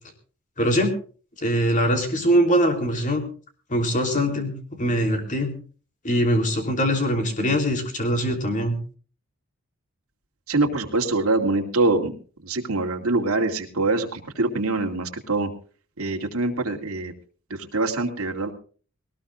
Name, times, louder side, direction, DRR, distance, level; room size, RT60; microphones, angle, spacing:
voice 1, 0.6-0.9 1.4-3.2 3.7-4.5 4.8-5.5 6.0-8.8, equal, 35° left, 5 dB, 3.5 m, -22 dB
voice 2, 10.5-12.1 12.4-15.5 16.0-17.1 17.5-18.5, right 2 dB, 70° right, 3 dB, 2.5 m, -24 dB
20.5 x 19.0 x 2.5 m, 0.40 s
head